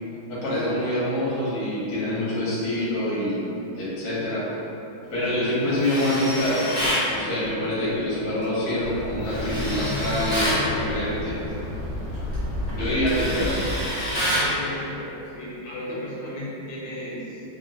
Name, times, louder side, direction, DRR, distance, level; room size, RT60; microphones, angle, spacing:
voice 1, 0.3-4.5 5.1-11.4 12.8-13.7, left 1 dB, 65° left, -8 dB, 1.3 m, -26 dB
Tools, 5.8-7.1 9.2-10.6 12.1-12.3 12.7-14.5, equal, 30° right, 0.9 m, -27 dB
sound 1, 8.8-13.8, left 1 dB, 60° right, 1.2 m, -32 dB
voice 2, 14.4-17.4, left 1 dB, 90° left, -6 dB, 1.3 m, -35 dB
3.3 x 2.1 x 2.6 m, 2.8 s
omnidirectional pair, 1.9 m